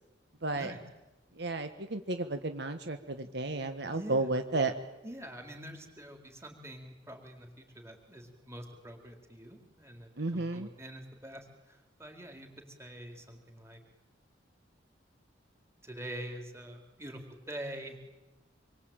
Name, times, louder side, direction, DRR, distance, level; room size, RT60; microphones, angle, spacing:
voice 1, 0.4-0.7 1.4-4.7 10.2-10.7, right 2 dB, 60° right, 7 dB, 1.6 m, -33 dB
voice 2, 3.9-4.3 5.0-13.8 15.8-18.0, right 1 dB, 15° right, 4 dB, 4.1 m, -45 dB
26.5 x 23.0 x 9.0 m, 1.0 s
head